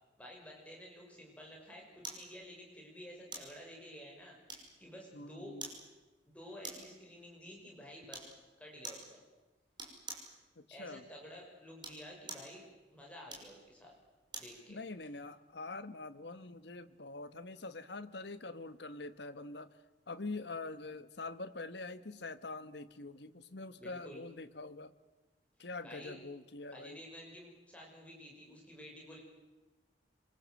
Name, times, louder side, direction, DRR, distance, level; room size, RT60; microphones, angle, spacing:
voice 1, 0.2-4.4 4.8-5.5 6.3-9.2 10.7-12.6 12.9-13.9 14.4-14.8 23.8-24.2 25.8-26.2 26.7-29.2, equal, 10° left, -1 dB, 5.8 m, -51 dB
sound 1, 2.0-2.3 3.3-3.6 4.5-4.9 5.6-5.8 6.6-7.0 8.1-8.3 8.8-9.1 9.8-10.3 11.7-12.5 13.3-14.6 15.0-15.1, right 3 dB, 25° right, 5.8 m, -46 dB
voice 2, 5.1-5.7 10.6-11.0 14.7-19.8 20.1-24.9 25.6-27.0, left 3 dB, 70° left, 11 dB, 1.4 m, -45 dB
26.5 x 24.0 x 7.8 m, 1.2 s
head